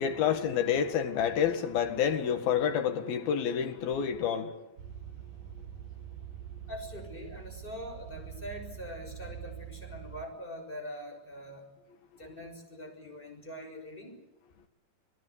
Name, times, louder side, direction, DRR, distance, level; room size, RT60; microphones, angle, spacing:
voice 1, 0.0-4.7, left 8 dB, 80° left, 3.7 m, -28 dB
sound 1, 4.8-10.3, right 10 dB, 65° right, 3.0 m, -44 dB
voice 2, 6.7-11.7 12.2-14.2, equal, 15° left, 6.1 m, -43 dB
27.5 x 19.0 x 8.3 m
omnidirectional pair, 4.3 m